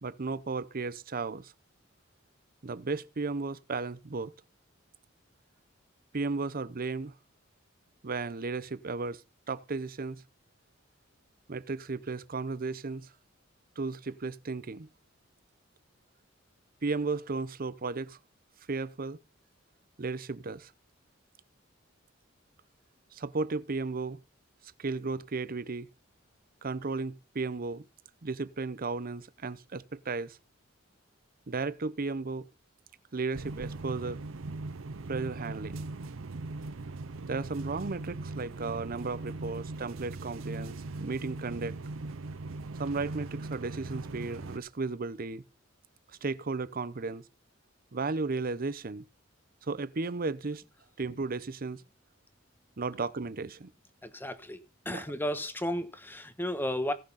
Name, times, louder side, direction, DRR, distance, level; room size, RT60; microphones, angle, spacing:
voice 1, 0.0-1.5 2.6-4.3 6.1-7.1 8.0-9.2 9.5-10.2 11.5-13.1 13.8-14.9 16.8-18.2 18.7-19.2 20.0-20.7 23.1-24.2 24.8-25.9 26.6-27.9 28.2-30.4 31.5-32.5 33.1-34.2 35.1-35.9 37.3-41.8 42.8-45.4 46.2-47.2 47.9-49.1 49.7-50.6 51.0-51.8 52.8-53.7 54.9-55.0, right 3 dB, 45° right, 0.7 m, -34 dB
sound 1, 33.3-44.6, right 3 dB, 85° right, 0.6 m, -40 dB
voice 2, 54.0-54.6 54.8-56.9, equal, 10° left, 1.2 m, -33 dB
17.0 x 6.5 x 5.6 m
head